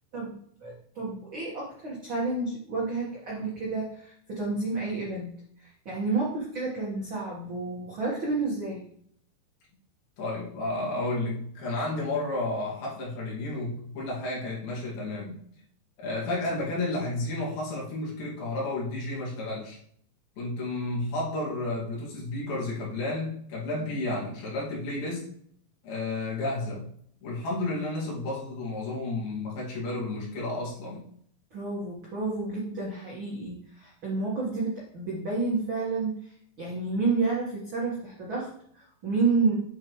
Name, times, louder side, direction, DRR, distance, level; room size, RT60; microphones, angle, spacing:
voice 1, 0.1-5.3 5.6-8.8 23.8-23.9 31.5-39.5, right 3 dB, 50° right, -5 dB, 1.5 m, -30 dB
voice 2, 10.2-15.4 16.0-19.8 20.4-25.3 25.8-26.8 27.2-31.1, left 2 dB, 70° left, -5 dB, 4.0 m, -32 dB
7.5 x 7.5 x 3.1 m, 0.64 s
omnidirectional pair, 4.4 m